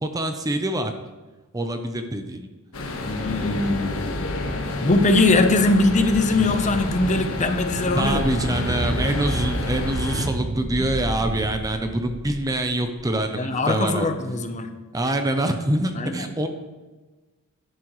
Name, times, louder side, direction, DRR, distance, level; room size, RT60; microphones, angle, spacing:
voice 1, 0.0-0.9 1.5-2.5 7.9-14.1 14.9-16.5, right 1 dB, 15° right, 6 dB, 0.6 m, -25 dB
sound 1, 2.7-10.3, left 2 dB, 65° left, 1.5 m, -29 dB
voice 2, 3.1-4.1 4.8-8.2 13.4-14.7 16.0-16.1, left 2 dB, 35° left, 7 dB, 0.8 m, -21 dB
sound 2, 6.1-13.2, right 1 dB, 50° right, 1.0 m, -31 dB
11.5 x 11.0 x 3.1 m, 1.2 s
head